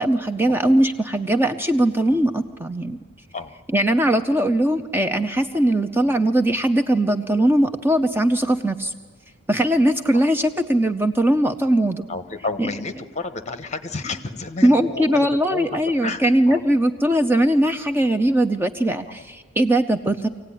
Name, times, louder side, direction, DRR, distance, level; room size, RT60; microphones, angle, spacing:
voice 1, 0.0-3.0 3.7-8.9 9.5-12.1 14.6-20.3, right 1 dB, 10° right, 7 dB, 0.6 m, -20 dB
voice 2, 12.1-16.6, left 3 dB, 35° left, 10 dB, 1.2 m, -31 dB
24.5 x 16.5 x 9.9 m, 1.5 s
head